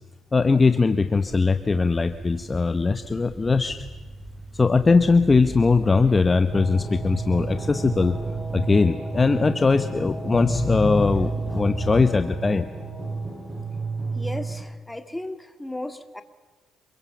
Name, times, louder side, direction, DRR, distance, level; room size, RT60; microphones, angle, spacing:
voice 1, 0.3-3.8 4.5-8.2 8.5-12.7, left 4 dB, 25° left, 10 dB, 0.9 m, -20 dB
sound 1, 1.1-8.8, right 1 dB, 10° right, 5.7 m, -41 dB
sound 2, 6.5-14.5, right 4 dB, 25° right, 7.3 m, -31 dB
voice 2, 14.1-16.2, left 1 dB, 10° left, 9 dB, 1.9 m, -35 dB
27.5 x 22.0 x 7.2 m, 1.3 s
cardioid pair, 90°, 0 cm